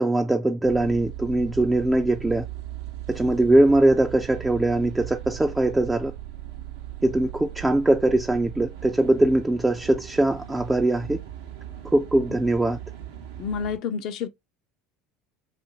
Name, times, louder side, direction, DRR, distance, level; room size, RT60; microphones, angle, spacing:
voice 1, 0.0-2.4 3.1-6.1 7.0-11.2 11.9-12.8, right 1 dB, 10° right, 0.3 m, -21 dB
sound 1, 0.6-13.8, right 13 dB, 70° right, 0.6 m, -38 dB
voice 2, 13.4-14.3, left 6 dB, 55° left, 0.5 m, -29 dB
2.6 x 2.4 x 2.8 m
figure-of-eight pair, 70°, 0 cm